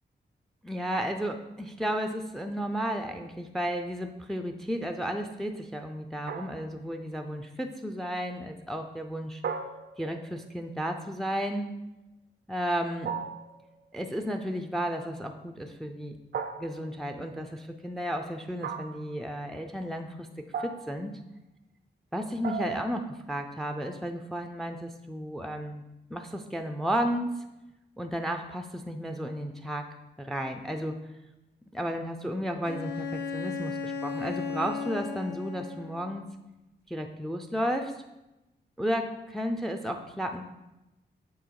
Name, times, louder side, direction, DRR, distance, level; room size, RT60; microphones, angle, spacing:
voice 1, 0.6-9.4 10.0-11.7 12.5-13.1 13.9-16.1 16.6-21.2 22.1-25.8 26.1-27.4 28.0-29.9 30.2-31.0 31.7-36.3 36.9-38.0 38.8-40.4, equal, ahead, 6 dB, 0.4 m, -33 dB
sound 1, 6.3-6.9 9.4-10.3 13.0-13.7 16.3-17.0 18.6-19.1 20.5-21.1 22.4-23.1, right 6 dB, 65° right, 0.4 m, -36 dB
Bowed string instrument, 32.6-36.2, left 5 dB, 70° left, 0.7 m, -35 dB
7.1 x 3.5 x 4.7 m, 0.98 s
wide cardioid pair, 90°, 18 cm